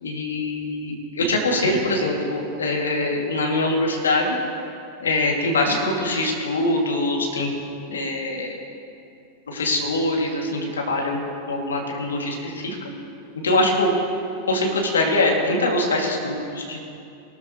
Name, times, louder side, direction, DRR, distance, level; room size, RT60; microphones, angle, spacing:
voice 1, 0.0-4.4 5.0-7.5 7.8-8.6 9.5-11.2 11.5-12.8 13.4-13.9 14.5-16.8, left 2 dB, 70° left, 0 dB, 2.6 m, -23 dB
21.5 x 13.5 x 3.2 m, 2.6 s
figure-of-eight pair, 90°, 0 cm